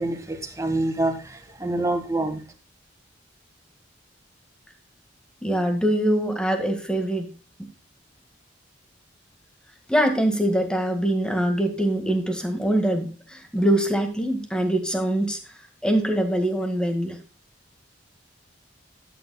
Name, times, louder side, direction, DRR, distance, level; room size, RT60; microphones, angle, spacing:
voice 1, 0.0-2.4, right 2 dB, 15° right, 1.6 m, -26 dB
voice 2, 5.4-7.3 7.6-7.7 9.9-17.2, right 1 dB, 5° left, 1.8 m, -23 dB
13.0 x 9.4 x 2.3 m
head